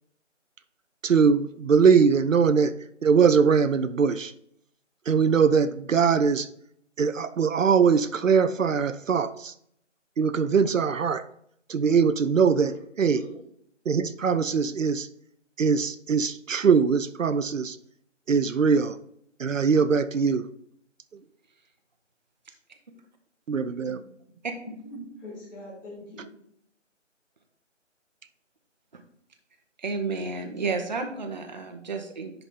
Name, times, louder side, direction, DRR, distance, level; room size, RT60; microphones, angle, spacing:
voice 1, 1.0-2.7 3.0-4.3 5.1-6.5 7.0-9.5 10.2-11.3 11.7-13.2 13.9-15.1 15.6-17.8 18.3-19.0 19.4-20.5 23.5-24.0, right 6 dB, 80° right, 12 dB, 0.6 m, -22 dB
voice 2, 24.6-26.3, equal, 15° left, -8 dB, 2.6 m, -42 dB
voice 3, 29.8-32.3, right 4 dB, 35° right, 4 dB, 0.8 m, -31 dB
10.0 x 4.0 x 3.6 m, 0.69 s
figure-of-eight pair, 155°, 38 cm